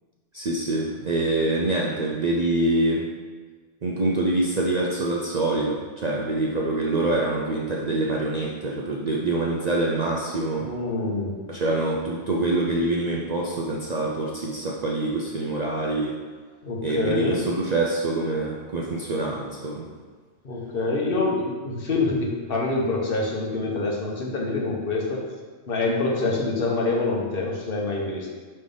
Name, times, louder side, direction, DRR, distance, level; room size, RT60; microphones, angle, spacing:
voice 1, 0.3-3.0 3.8-10.7 11.5-16.2 16.8-19.9, right 2 dB, 50° right, -2 dB, 0.5 m, -25 dB
voice 2, 10.6-11.3 16.6-17.4 20.4-25.2 25.7-28.3, left 3 dB, 55° left, -2 dB, 1.1 m, -26 dB
5.3 x 3.3 x 5.3 m, 1.4 s
omnidirectional pair, 1.2 m